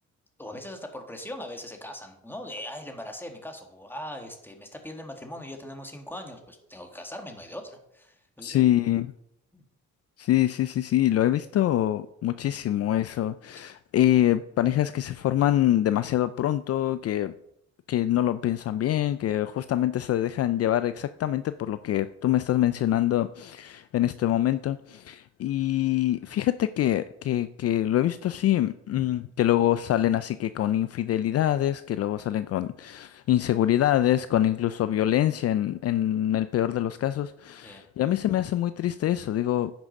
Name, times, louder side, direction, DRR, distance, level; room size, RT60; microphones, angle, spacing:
voice 1, 0.4-8.7 9.5-9.6 37.6-37.8, left 1 dB, 5° left, 1.9 m, -40 dB
voice 2, 8.4-9.1 10.2-17.3 17.9-39.7, left 12 dB, 55° left, 0.4 m, -25 dB
9.9 x 6.2 x 5.3 m
cardioid pair, 90°, 30 cm